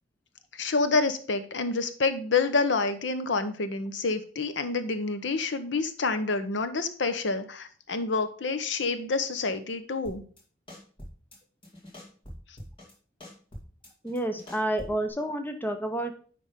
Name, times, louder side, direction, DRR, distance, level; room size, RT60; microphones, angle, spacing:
voice 1, 0.5-10.2, left 3 dB, 70° left, 10 dB, 0.7 m, -28 dB
sound 1, 10.0-10.4 10.7-11.4 11.6-12.9 13.2-15.1, equal, 25° left, 2.1 m, -45 dB
voice 2, 14.0-16.1, right 1 dB, 10° left, 6 dB, 0.7 m, -29 dB
9.8 x 3.4 x 5.0 m, 0.44 s
head